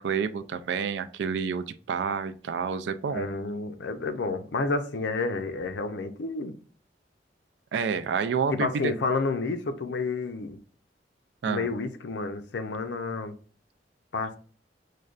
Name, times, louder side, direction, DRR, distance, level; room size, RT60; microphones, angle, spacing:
voice 1, 0.0-3.3 7.7-8.9 11.4-11.7, right 6 dB, 80° right, 0.3 m, -29 dB
voice 2, 3.1-6.5 8.5-10.6 11.4-13.3 14.1-14.3, left 3 dB, 80° left, 0.5 m, -30 dB
6.3 x 2.2 x 2.4 m
head